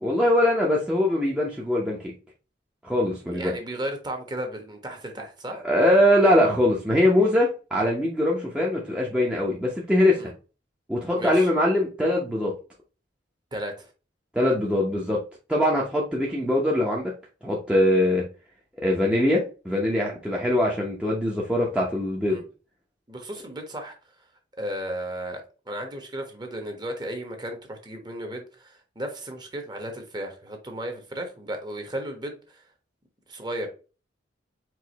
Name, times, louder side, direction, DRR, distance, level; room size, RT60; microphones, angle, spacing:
voice 1, 0.0-2.1 2.8-3.5 5.6-10.2 10.9-12.5 14.3-15.2 15.5-17.1 17.4-18.2 18.8-22.4, left 1 dB, 5° right, 0.8 m, -22 dB
voice 2, 3.2-5.7 10.1-10.3 11.1-11.5 13.5-13.9 22.2-22.4 23.1-23.9 24.6-32.6 33.3-33.7, right 1 dB, 25° right, 1.1 m, -35 dB
4.8 x 2.7 x 4.0 m
head